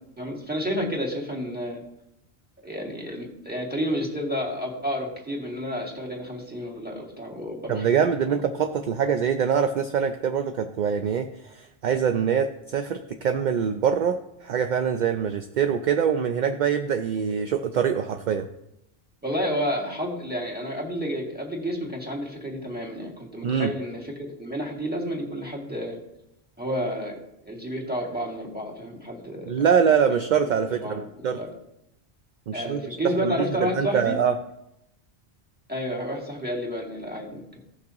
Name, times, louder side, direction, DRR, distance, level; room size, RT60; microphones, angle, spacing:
voice 1, 0.2-1.8 2.6-8.3 19.2-26.0 26.6-27.2 27.4-29.7 30.1-30.2 30.7-31.0 31.4-31.5 32.5-34.2 35.7-37.6, equal, 10° right, -3 dB, 2.1 m, -30 dB
voice 2, 7.7-18.5 23.4-23.7 29.5-31.4 32.5-32.9 33.2-34.3, right 7 dB, 55° right, 7 dB, 0.5 m, -24 dB
16.5 x 6.0 x 2.9 m, 0.86 s
omnidirectional pair, 1.1 m